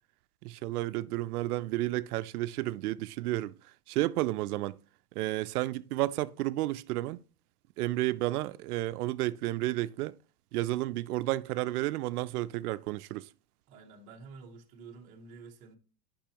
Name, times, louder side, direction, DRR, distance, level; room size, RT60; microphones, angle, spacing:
voice 1, 0.4-3.5 3.9-4.8 5.2-7.2 7.8-10.1 10.5-13.3, right 17 dB, 70° right, 0.5 m, -31 dB
voice 2, 13.7-15.8, right 4 dB, 15° right, 0.6 m, -50 dB
10.0 x 5.6 x 2.9 m
supercardioid pair, 170°, 48 cm